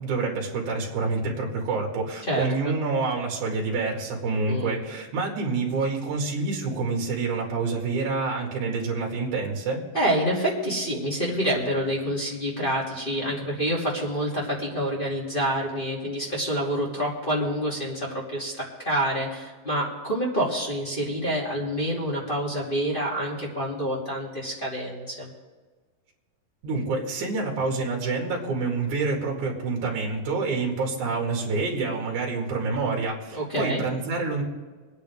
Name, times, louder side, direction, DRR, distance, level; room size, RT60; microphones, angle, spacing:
voice 1, 0.0-9.8 26.6-34.4, right 3 dB, 60° right, -1 dB, 3.5 m, -27 dB
voice 2, 2.2-2.7 4.5-4.8 9.9-25.3 33.3-33.8, equal, 15° left, -6 dB, 2.3 m, -27 dB
25.0 x 9.7 x 3.6 m, 1.4 s
omnidirectional pair, 4.2 m